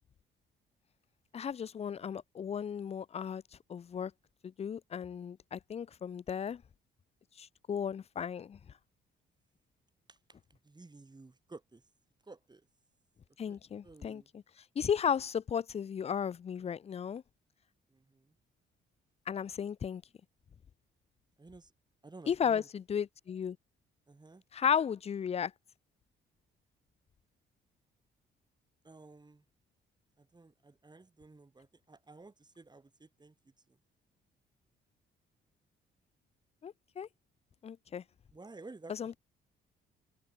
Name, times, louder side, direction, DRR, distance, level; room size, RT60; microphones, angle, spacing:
voice 1, 1.3-3.4 3.7-4.1 4.4-6.6 7.4-8.6 13.4-14.2 14.8-17.2 19.3-20.0 22.3-23.6 24.5-25.5 36.6-37.1 37.6-38.0 38.9-39.1, left 7 dB, 30° left, 0.4 m, -34 dB
voice 2, 10.5-11.8 12.2-12.7 13.5-13.6 13.8-14.3 17.9-18.3 21.4-21.7 22.0-22.7 24.1-24.4 28.8-29.4 30.2-33.4 33.7-33.8 38.3-39.2, right 3 dB, 20° right, 5.3 m, -53 dB
cardioid pair, 90°, 20 cm